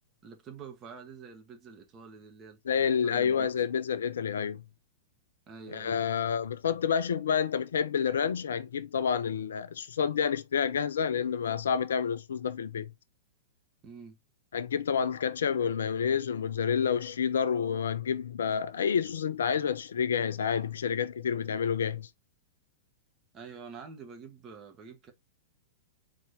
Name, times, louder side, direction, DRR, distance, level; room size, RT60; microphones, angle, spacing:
voice 1, 0.2-3.5 5.5-6.0 13.8-14.2 23.3-25.1, right 5 dB, 30° right, 1.4 m, -47 dB
voice 2, 2.7-4.6 5.7-12.9 14.5-22.1, left 7 dB, 65° left, 0.4 m, -29 dB
4.1 x 3.1 x 3.3 m
figure-of-eight pair, 100°, 0 cm